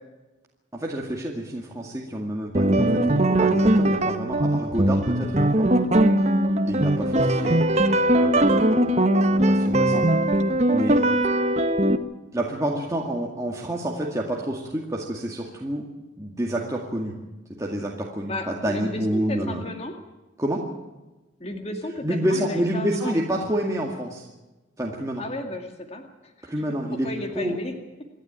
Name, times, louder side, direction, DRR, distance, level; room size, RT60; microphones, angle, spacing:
voice 1, 0.7-5.7 6.6-7.6 8.2-8.6 9.3-10.1 10.7-11.0 12.3-15.8 16.2-17.1 17.6-19.6 20.4-20.6 22.0-24.3 24.8-25.2 26.4-27.6, right 1 dB, 15° right, -2 dB, 2.1 m, -28 dB
sound 1, 2.5-12.0, right 1 dB, 35° right, 1.2 m, -20 dB
voice 2, 7.3-7.6 18.3-19.9 21.4-23.2 25.2-26.5 27.0-27.7, left 1 dB, 35° left, 4 dB, 2.2 m, -34 dB
27.5 x 12.0 x 9.1 m, 1.1 s
head